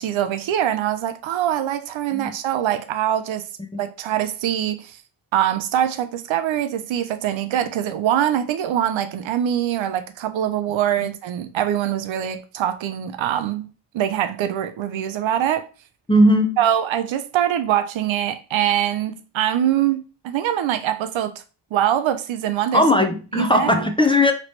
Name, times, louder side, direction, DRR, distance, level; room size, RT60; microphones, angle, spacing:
voice 1, 0.0-3.4 3.8-5.0 5.3-13.7 13.9-15.7 16.6-21.4 21.7-22.8 23.3-23.8, right 11 dB, 75° right, 0.6 m, -23 dB
voice 2, 16.1-16.6 22.7-24.3, left 1 dB, 10° left, 0.5 m, -17 dB
3.0 x 2.9 x 3.1 m
cardioid pair, 65°, 47 cm